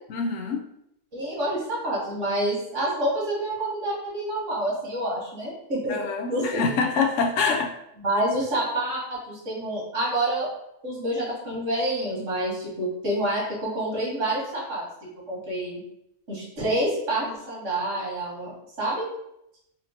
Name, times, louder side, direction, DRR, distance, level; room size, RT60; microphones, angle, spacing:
voice 1, 0.1-0.6 5.9-7.7, left 5 dB, 80° left, 3 dB, 1.0 m, -25 dB
voice 2, 1.1-5.9 6.3-6.6 8.0-10.6 10.8-14.9 15.3-15.8 16.3-19.1, right 1 dB, 85° right, -4 dB, 1.8 m, -28 dB
4.3 x 2.9 x 2.8 m, 0.80 s
omnidirectional pair, 1.3 m